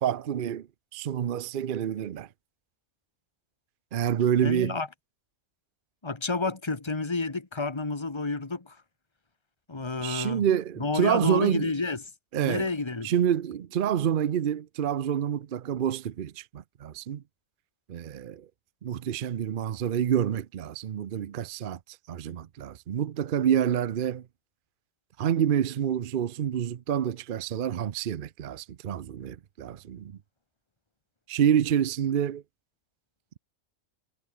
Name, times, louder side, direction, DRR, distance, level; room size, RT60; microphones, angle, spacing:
voice 1, 0.0-0.7 0.9-2.3 3.9-4.8 10.0-11.7 12.3-12.7 13.0-17.2 17.9-18.5 18.8-21.8 22.1-24.3 25.2-30.2 31.3-32.4, right 9 dB, 50° right, 0.7 m, -27 dB
voice 2, 4.4-4.9 6.0-8.8 9.7-10.4 10.8-12.0 12.4-13.1, left 3 dB, 20° left, 1.7 m, -30 dB
omnidirectional pair, 1.5 m